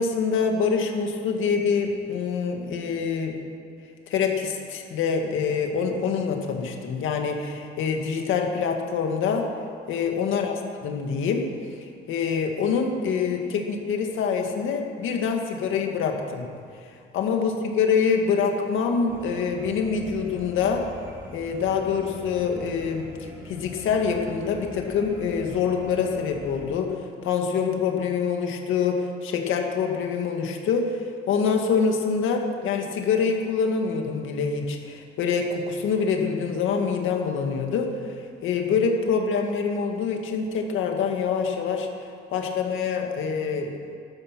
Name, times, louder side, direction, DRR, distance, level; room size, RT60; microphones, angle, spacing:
voice 1, 0.0-3.4 4.1-9.5 9.9-10.5 10.8-11.5 11.8-16.5 17.1-20.9 21.3-27.0 27.2-31.0 31.3-37.9 38.4-41.9 42.3-43.7, left 6 dB, 85° left, 3 dB, 2.0 m, -25 dB
sound 1, 19.1-26.6, left 1 dB, 10° right, 4.0 m, -42 dB
13.5 x 13.0 x 6.1 m, 2.3 s
cardioid pair, 90°, 20 cm